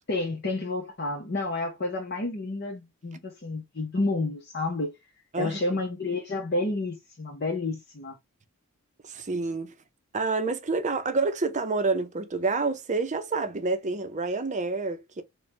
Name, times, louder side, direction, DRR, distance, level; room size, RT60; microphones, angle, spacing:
voice 1, 0.1-4.9 5.4-8.2, left 2 dB, 50° left, 0.8 m, -30 dB
voice 2, 9.0-9.7 10.1-15.2, right 3 dB, 35° right, 0.6 m, -28 dB
4.3 x 2.2 x 3.2 m
head